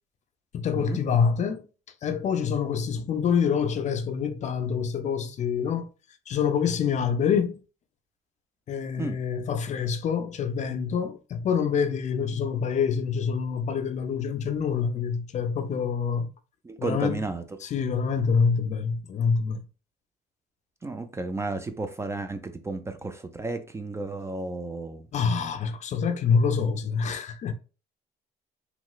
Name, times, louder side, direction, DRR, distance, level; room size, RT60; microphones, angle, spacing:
voice 1, 0.5-1.7 2.0-5.9 6.3-7.6 8.7-16.3 16.8-17.3 17.6-19.6 25.1-27.5, left 6 dB, 45° left, 0.5 m, -26 dB
voice 2, 16.6-17.4 20.8-25.1, right 3 dB, 15° right, 0.3 m, -33 dB
3.0 x 2.9 x 2.3 m
cardioid pair, 110°, 17 cm